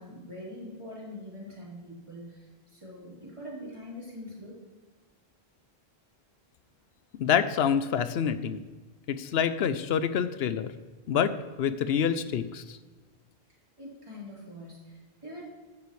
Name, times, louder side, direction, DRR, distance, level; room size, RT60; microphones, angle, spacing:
voice 1, 0.0-4.6 13.8-15.4, left 1 dB, 30° right, -8 dB, 4.0 m, -43 dB
voice 2, 7.2-8.6 9.1-10.7 11.1-12.8, left 8 dB, 80° left, 12 dB, 0.8 m, -27 dB
13.5 x 9.6 x 3.2 m, 1.3 s
omnidirectional pair, 1.1 m